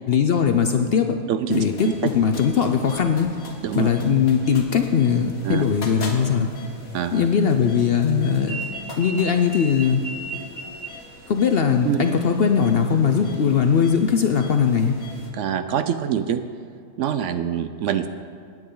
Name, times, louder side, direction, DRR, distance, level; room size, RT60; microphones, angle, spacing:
voice 1, 0.1-1.2 1.5-3.3 3.7-6.5 7.1-8.6 9.0-10.0 11.3-15.0, left 7 dB, 55° left, 6 dB, 0.7 m, -20 dB
voice 2, 1.3-1.6 3.6-3.9 5.4-5.6 6.9-7.3 11.8-12.1 15.3-16.4 17.0-18.1, right 9 dB, 70° right, 10 dB, 0.8 m, -24 dB
sound 1, 1.5-15.3, equal, 75° left, 1.8 m, -39 dB
16.5 x 9.1 x 3.9 m, 2.3 s
omnidirectional pair, 1.5 m